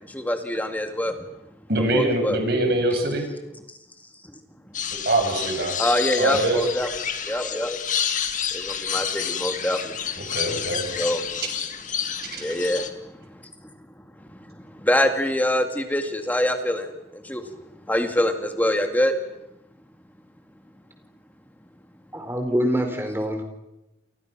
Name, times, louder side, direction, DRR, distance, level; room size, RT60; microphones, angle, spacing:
voice 1, 0.1-1.1 1.9-2.4 5.8-6.9 7.3-7.8 8.5-9.9 11.0-11.2 12.4-12.8 14.8-16.9 17.3-17.4 17.9-19.1, left 1 dB, 10° left, 6 dB, 2.0 m, -24 dB
voice 2, 1.7-3.3 5.0-5.8 6.2-6.7 10.2-10.8 12.3-12.5, right 1 dB, 55° right, 4 dB, 7.1 m, -23 dB
sound 1, 4.7-12.9, left 8 dB, 45° left, 2.1 m, -29 dB
voice 3, 22.1-23.4, equal, 15° right, 5 dB, 4.6 m, -25 dB
29.5 x 29.5 x 6.1 m, 0.90 s
head